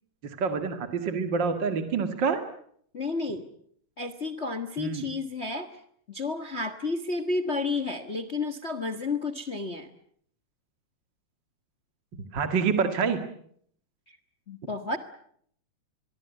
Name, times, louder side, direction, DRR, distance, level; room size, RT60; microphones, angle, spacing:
voice 1, 0.2-2.4 4.8-5.0 12.3-13.2, right 5 dB, 40° right, 8 dB, 2.1 m, -27 dB
voice 2, 2.9-3.5 4.0-5.7 6.1-9.9 14.1-14.2 14.5-15.0, left 3 dB, 55° left, 12 dB, 0.7 m, -31 dB
24.5 x 23.0 x 8.3 m, 0.66 s
omnidirectional pair, 3.7 m